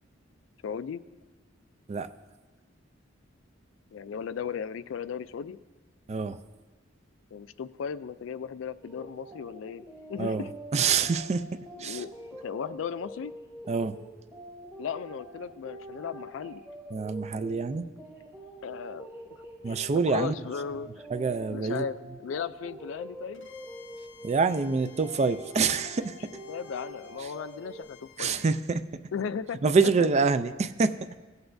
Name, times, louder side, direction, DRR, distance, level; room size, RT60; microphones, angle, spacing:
voice 1, 0.6-1.0 3.9-5.6 7.3-9.8 10.1-10.5 11.8-12.1 12.4-13.3 14.8-16.6 18.6-19.1 19.7-19.8 20.1-20.9 21.4-21.9 22.2-23.5 26.5-28.5 29.1-29.7 30.0-30.1, left 7 dB, 70° left, 15 dB, 0.3 m, -36 dB
voice 2, 6.1-6.4 10.2-10.5 10.7-12.0 13.7-14.0 16.9-17.9 19.6-20.3 21.1-21.9 24.2-26.3 27.2-27.3 28.2-28.8 29.6-31.1, right 4 dB, 35° right, 12 dB, 0.4 m, -26 dB
sound 1, 8.8-27.8, right 1 dB, 10° right, 1.0 m, -45 dB
Bowed string instrument, 23.3-28.5, left 8 dB, 90° left, 1.1 m, -55 dB
17.0 x 8.0 x 2.6 m, 1.2 s
head